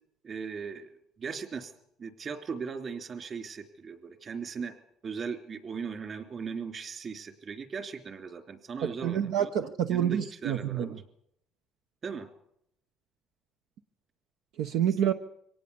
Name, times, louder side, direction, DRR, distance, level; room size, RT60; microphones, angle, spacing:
voice 1, 0.2-0.9 1.2-1.7 2.0-4.8 5.0-9.5 9.9-11.0 12.0-12.3, right 5 dB, 40° right, 8 dB, 3.1 m, -38 dB
voice 2, 8.8-10.9 14.6-15.1, right 9 dB, 80° right, 7 dB, 1.0 m, -28 dB
24.0 x 18.0 x 7.1 m, 0.72 s
cardioid pair, 120°, 0 cm